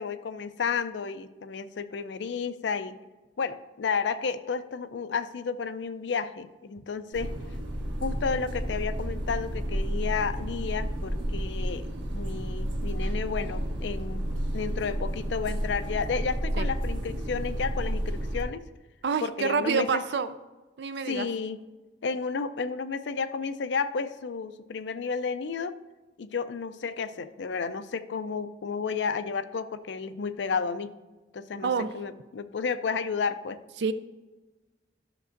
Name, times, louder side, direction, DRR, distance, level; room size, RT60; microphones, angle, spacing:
voice 1, 0.0-3.0 3.4-7.3 8.0-14.3 14.5-18.6 19.2-20.0 21.1-21.6 22.0-25.7 26.2-30.9 31.3-33.6, left 5 dB, 80° left, 12 dB, 0.5 m, -32 dB
sound 1, 7.1-18.4, equal, 90° right, 1.2 m, -31 dB
voice 2, 19.0-20.3 20.8-21.3 31.6-31.9 33.8-33.9, right 5 dB, 70° right, 12 dB, 0.4 m, -27 dB
12.5 x 6.0 x 2.6 m, 1.2 s
head